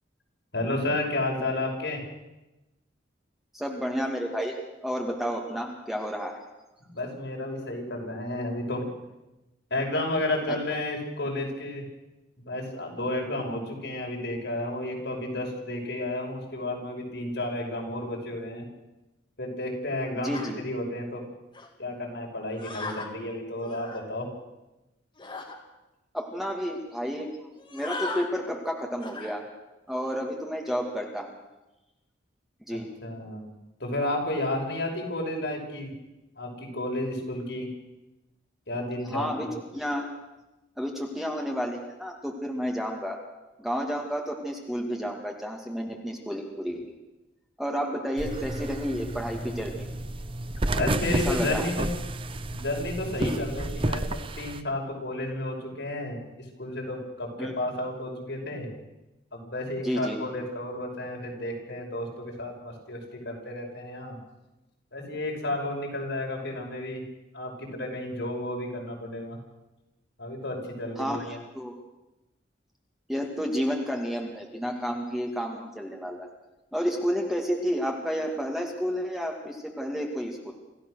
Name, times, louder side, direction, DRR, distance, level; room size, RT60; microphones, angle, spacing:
voice 1, 0.5-2.0 6.8-8.9 9.7-11.8 12.4-18.6 19.4-21.2 21.8-24.3 32.7-33.4 33.8-35.9 36.4-37.7 38.7-39.5 49.4-49.6 50.7-51.9 52.5-56.2 56.6-58.7 59.3-64.2 64.9-67.0 67.3-69.4 70.2-71.4, left 1 dB, 70° left, 0 dB, 5.8 m, -32 dB
voice 2, 3.5-4.6 4.8-6.4 10.5-10.6 20.2-20.6 26.1-29.4 29.9-31.4 32.7-32.9 39.1-39.5 39.7-40.1 40.8-43.2 43.6-46.8 47.6-49.9 51.1-51.7 53.2-53.4 57.4-57.5 59.8-60.2 71.0-71.7 73.1-76.3 76.7-80.5, equal, ahead, 1 dB, 2.4 m, -31 dB
sound 1, 20.3-20.5 21.5-21.7 22.6-23.1 23.6-24.0 25.2-25.6 26.2-26.3 26.5-26.7 27.6-28.3 29.0-29.4 29.9-30.2, left 3 dB, 25° left, 2.5 m, -38 dB
sound 2, 48.2-54.6, right 2 dB, 30° right, 0.7 m, -31 dB
26.5 x 15.0 x 6.5 m, 1.0 s
head